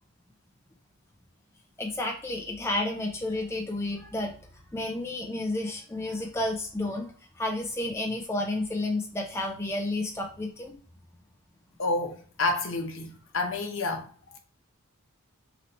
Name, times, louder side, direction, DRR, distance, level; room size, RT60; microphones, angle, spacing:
voice 1, 1.8-4.3 4.7-10.7, left 1 dB, 10° left, 0.5 m, -31 dB
voice 2, 11.8-14.4, left 3 dB, 65° left, 0.8 m, -30 dB
3.1 x 2.7 x 4.2 m
head